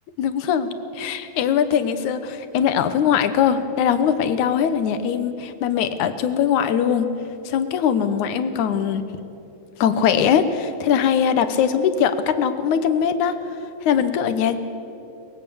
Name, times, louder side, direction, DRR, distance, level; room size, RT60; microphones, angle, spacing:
voice 1, 0.2-0.7 1.0-7.1 7.5-9.0 9.8-13.4 13.8-14.6, left 8 dB, 70° left, 10 dB, 2.4 m, -21 dB
23.5 x 21.0 x 7.1 m, 3.0 s
omnidirectional pair, 3.9 m